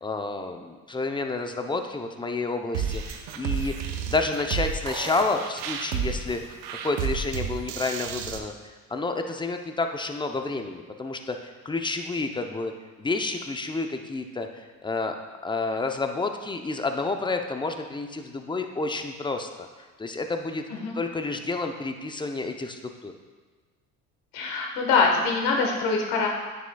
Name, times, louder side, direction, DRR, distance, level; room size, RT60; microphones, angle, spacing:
voice 1, 0.0-6.6 6.8-8.5 8.9-12.7 13.0-15.1 15.4-19.7 20.0-20.6 20.9-23.1, left 3 dB, 10° left, 5 dB, 0.7 m, -30 dB
sound 1, 2.7-8.4, right 7 dB, 80° right, 0.8 m, -31 dB
voice 2, 24.3-26.3, left 4 dB, 75° left, 1 dB, 1.5 m, -24 dB
9.2 x 6.5 x 2.3 m, 1.4 s
supercardioid pair, 75°, 39 cm